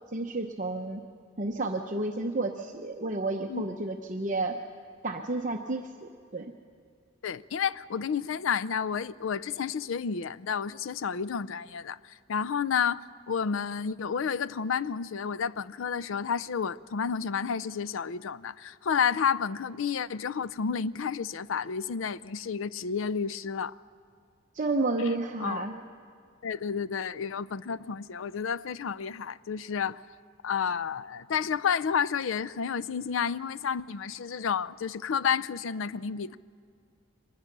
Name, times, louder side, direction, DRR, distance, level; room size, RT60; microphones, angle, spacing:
voice 1, 0.1-1.0 1.4-4.6 5.0-6.5 24.5-25.8, right 2 dB, 40° right, 3 dB, 0.8 m, -31 dB
voice 2, 7.2-23.7 25.4-25.6 26.4-30.0 30.4-36.4, left 6 dB, 75° left, 18 dB, 0.5 m, -31 dB
24.0 x 20.0 x 6.0 m, 2.3 s
head